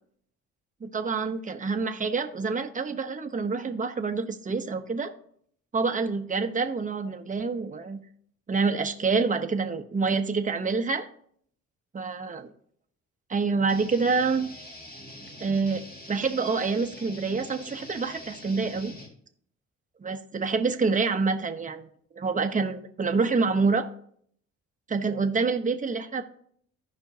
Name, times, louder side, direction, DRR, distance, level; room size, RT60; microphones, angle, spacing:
voice 1, 0.8-5.1 5.7-8.0 8.5-11.1 11.9-12.5 13.3-14.5 15.4-15.8 16.1-18.9 20.0-21.9 22.1-23.9 24.9-26.2, right 4 dB, 25° right, 6 dB, 0.9 m, -27 dB
sound 1, 13.7-19.1, left 1 dB, 30° left, 1.9 m, -44 dB
15.0 x 5.2 x 2.7 m, 0.63 s
cardioid pair, 90°, 30 cm